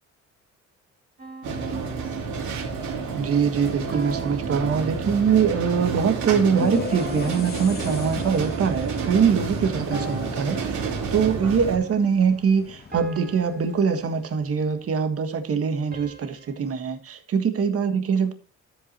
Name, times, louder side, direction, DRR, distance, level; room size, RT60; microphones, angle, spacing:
sound 1, 1.2-2.8 3.9-5.4 6.9-8.6 9.9-11.4 12.9-14.7 15.9-17.0, right 2 dB, 30° right, 2.2 m, -42 dB
sound 2, 1.4-11.8, right 5 dB, 75° right, 3.1 m, -30 dB
voice 1, 3.1-18.3, right 6 dB, 50° right, 7 dB, 1.6 m, -23 dB
sound 3, 6.5-14.9, left 5 dB, 30° left, 1.2 m, -38 dB
13.5 x 8.4 x 3.0 m, 0.33 s
cardioid pair, 140°, 30 cm